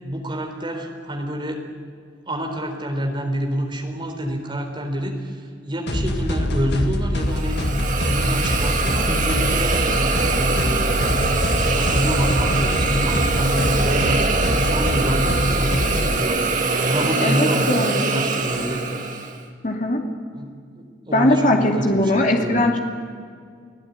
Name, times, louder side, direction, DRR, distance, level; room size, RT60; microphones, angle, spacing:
voice 1, 0.0-1.8 2.3-9.7 10.3-11.2 11.7-18.8 20.3-22.7, equal, 25° right, 3 dB, 4.0 m, -27 dB
sound 1, 5.9-16.2, left 1 dB, 55° left, 1.9 m, -24 dB
Hiss, 7.3-19.4, right 4 dB, 40° right, 2.2 m, -23 dB
voice 2, 17.2-18.2 19.6-20.0 21.1-22.8, left 1 dB, 40° left, 2 dB, 2.7 m, -20 dB
29.5 x 17.5 x 9.7 m, 2.1 s
head